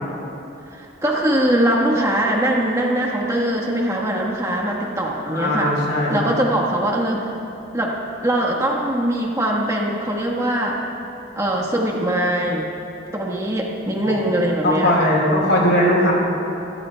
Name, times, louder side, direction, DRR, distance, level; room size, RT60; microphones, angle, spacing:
voice 1, 0.7-5.7 6.1-7.3 7.7-8.0 8.2-10.8 11.4-12.7 13.1-15.1, right 1 dB, 15° right, -2 dB, 1.3 m, -21 dB
voice 2, 5.3-6.3 14.0-14.2 14.6-16.1, left 1 dB, 90° left, -2 dB, 3.7 m, -19 dB
24.0 x 14.0 x 2.3 m, 2.9 s
head